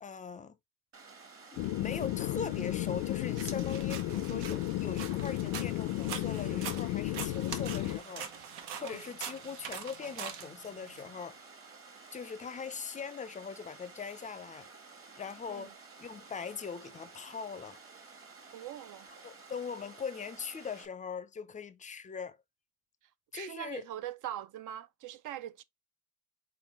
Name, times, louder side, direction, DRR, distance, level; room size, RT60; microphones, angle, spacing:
voice 1, 0.0-0.5 1.5-8.3 8.8-11.4 12.1-14.7 15.2-17.8 19.2-22.4 23.3-23.9, left 6 dB, 20° left, 0.5 m, -41 dB
Water, 0.9-20.9, right 4 dB, 35° right, 1.4 m, -53 dB
sound 1, 1.6-8.0, left 15 dB, 85° left, 0.6 m, -33 dB
sound 2, 3.4-11.0, right 7 dB, 80° right, 1.1 m, -44 dB
voice 2, 18.5-19.1 23.3-25.6, right 12 dB, 55° right, 0.6 m, -42 dB
4.4 x 3.9 x 2.9 m
cardioid pair, 135°, 38 cm